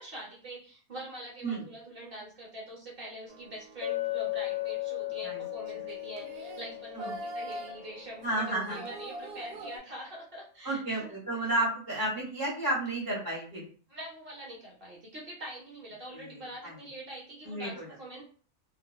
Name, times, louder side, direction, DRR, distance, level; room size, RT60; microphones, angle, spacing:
voice 1, 0.0-11.1 11.4-11.5 13.9-18.2, right 1 dB, 45° right, -4 dB, 0.8 m, -44 dB
sound 1, 3.3-9.8, right 1 dB, 75° right, 1.0 m, -44 dB
Chink clink, 3.8-8.3, left 18 dB, 75° left, 1.0 m, -36 dB
voice 2, 8.2-8.8 10.6-13.7 16.1-16.8 17.4-17.8, right 1 dB, 15° right, -6 dB, 1.0 m, -32 dB
2.7 x 2.0 x 2.2 m, 0.41 s
omnidirectional pair, 1.6 m